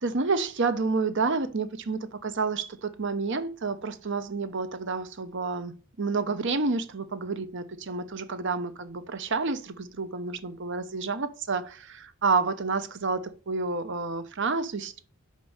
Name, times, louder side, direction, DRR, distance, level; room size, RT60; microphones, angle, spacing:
voice 1, 0.0-15.0, right 4 dB, 60° right, 0.8 m, -29 dB
5.3 x 5.2 x 6.5 m
head